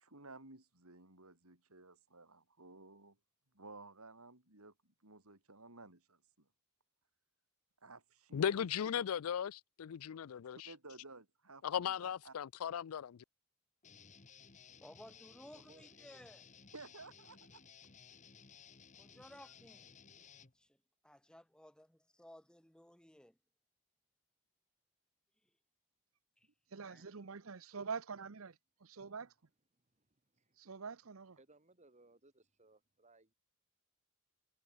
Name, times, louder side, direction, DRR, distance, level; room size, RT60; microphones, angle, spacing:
voice 1, 0.0-3.2 3.5-6.5 7.8-8.7 9.0-9.1 10.6-12.3 16.7-17.6, right 3 dB, 90° right, 6.1 m, -55 dB
voice 2, 8.3-10.7 11.6-13.2, left 8 dB, 80° left, 0.4 m, -37 dB
Guitar, 13.8-20.5, left 6 dB, 35° left, 1.4 m, -59 dB
voice 3, 14.8-16.4 19.0-20.0 20.5-20.8 21.0-23.4 26.4-26.5 26.8-27.0, left 1 dB, 5° left, 1.2 m, -58 dB
voice 4, 15.5-16.5 27.0-27.1 29.1-29.3 29.8-30.6 31.4-33.3, right 2 dB, 35° right, 2.7 m, -67 dB
voice 5, 26.7-28.5 29.0-29.3 30.6-31.4, right 5 dB, 70° right, 0.8 m, -45 dB
head